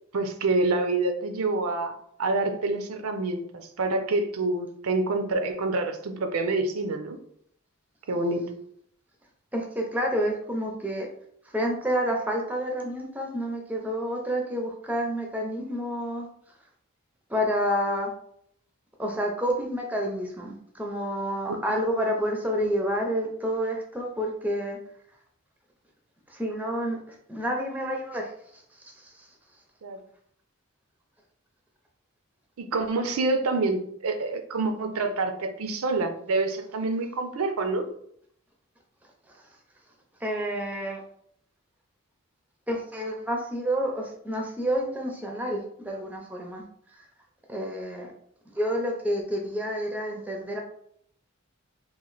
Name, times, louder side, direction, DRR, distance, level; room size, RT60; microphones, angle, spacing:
voice 1, 0.1-1.9 2.2-7.2 8.1-8.5 21.5-21.6 29.8-30.0 32.6-37.9, right 3 dB, 75° right, 6 dB, 0.5 m, -27 dB
voice 2, 9.5-11.1 11.4-16.3 17.3-18.1 19.0-24.8 26.3-29.3 39.3-39.4 40.2-41.0 42.7-47.1 47.5-48.1 48.5-50.6, equal, 5° right, 1 dB, 0.5 m, -29 dB
3.0 x 2.4 x 3.9 m, 0.69 s
head